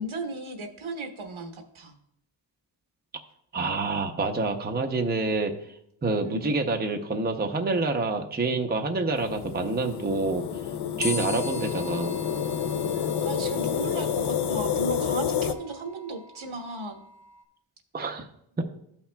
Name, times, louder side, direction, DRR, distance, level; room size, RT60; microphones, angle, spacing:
voice 1, 0.0-1.9 6.2-6.7 12.9-17.0, right 2 dB, 75° right, 4 dB, 1.1 m, -36 dB
voice 2, 3.5-5.5 6.0-10.5 11.0-12.2 17.9-18.3, right 3 dB, 20° right, 4 dB, 0.6 m, -27 dB
sound 1, 9.2-15.5, left 8 dB, 60° left, 0.5 m, -29 dB
sound 2, 11.0-17.4, left 3 dB, 35° left, 0.9 m, -40 dB
13.0 x 5.7 x 2.2 m, 0.73 s
wide cardioid pair, 110°, 48 cm